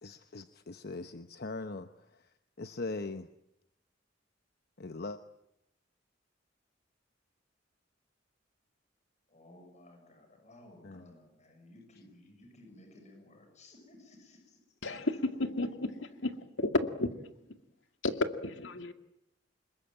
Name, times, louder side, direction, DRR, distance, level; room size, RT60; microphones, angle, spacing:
voice 1, 0.0-2.3 2.6-3.3 4.8-5.2 10.8-11.1, left 3 dB, 55° left, 0.9 m, -41 dB
voice 2, 9.3-14.6, left 1 dB, 40° left, 6.8 m, -56 dB
voice 3, 14.8-15.9 16.2-16.3 16.6-16.7 17.0-17.1 18.0-18.9, left 2 dB, 80° left, 2.2 m, -32 dB
27.0 x 22.0 x 9.1 m
head